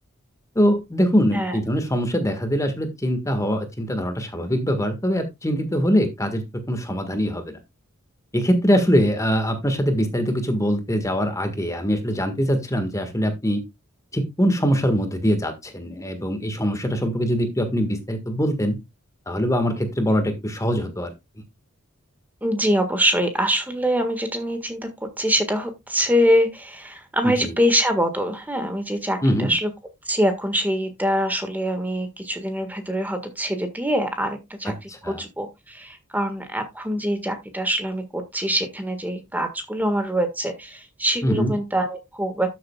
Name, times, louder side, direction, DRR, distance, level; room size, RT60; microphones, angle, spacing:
voice 1, 0.5-6.4 6.7-7.6 8.3-13.6 14.1-18.8 19.3-21.1 27.2-27.5 29.2-29.5 34.6-35.2 41.2-41.5, equal, 15° left, 7 dB, 1.6 m, -23 dB
voice 2, 22.4-24.8 25.2-29.7 30.1-42.5, equal, 10° right, 7 dB, 1.6 m, -24 dB
13.0 x 7.6 x 2.3 m, 0.21 s
head